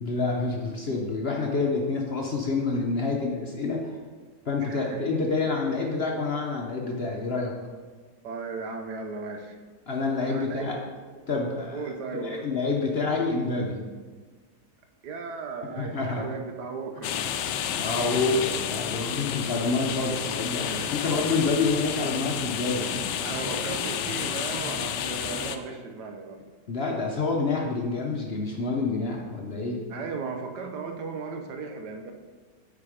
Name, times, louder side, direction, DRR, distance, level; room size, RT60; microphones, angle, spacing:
voice 1, 0.0-4.0 4.5-7.5 9.9-10.8 11.3-13.8 15.8-16.3 17.8-23.1 26.7-29.8, left 3 dB, 45° left, 0 dB, 0.9 m, -28 dB
voice 2, 4.6-5.0 8.2-9.6 10.3-10.9 11.7-12.4 15.0-17.1 20.7-21.4 23.2-26.4 29.9-32.1, right 4 dB, 75° right, 5 dB, 1.4 m, -36 dB
sound 1, 17.0-25.6, left 8 dB, 90° left, 1.2 m, -31 dB
8.7 x 4.9 x 5.0 m, 1.4 s
omnidirectional pair, 1.8 m